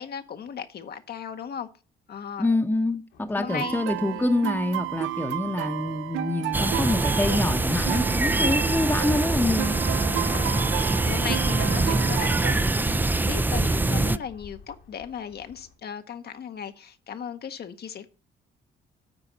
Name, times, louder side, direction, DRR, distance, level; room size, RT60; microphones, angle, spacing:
voice 1, 0.0-1.7 2.1-2.5 3.3-4.3 10.1-18.1, left 8 dB, 55° left, 0.8 m, -37 dB
voice 2, 2.4-9.7, left 2 dB, 10° left, 0.8 m, -26 dB
sound 1, 3.1-15.8, left 6 dB, 90° left, 2.2 m, -53 dB
sound 2, 3.5-12.5, right 15 dB, 80° right, 0.5 m, -32 dB
sound 3, 6.5-14.2, right 2 dB, 10° right, 0.3 m, -24 dB
9.1 x 4.0 x 7.2 m
cardioid pair, 90°, 20 cm